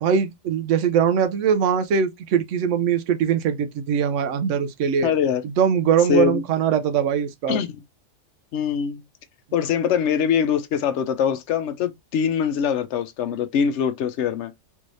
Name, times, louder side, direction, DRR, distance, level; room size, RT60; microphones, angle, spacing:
voice 1, 0.0-5.1 5.4-7.6, right 7 dB, 85° right, 1.0 m, -21 dB
voice 2, 5.0-5.4 6.1-6.4 7.5-7.8 8.5-9.0 9.5-14.5, left 7 dB, 75° left, 0.9 m, -23 dB
3.4 x 3.2 x 2.5 m
omnidirectional pair, 1.2 m